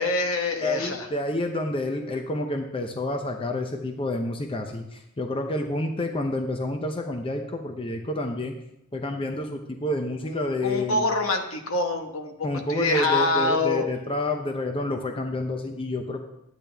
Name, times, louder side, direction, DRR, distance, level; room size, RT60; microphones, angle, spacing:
voice 1, 0.0-1.1 10.3-13.8, left 3 dB, 65° left, 5 dB, 1.1 m, -25 dB
voice 2, 0.6-8.6 8.9-11.1 12.4-16.2, left 1 dB, 25° left, 4 dB, 0.6 m, -29 dB
10.5 x 8.7 x 3.4 m, 0.86 s
head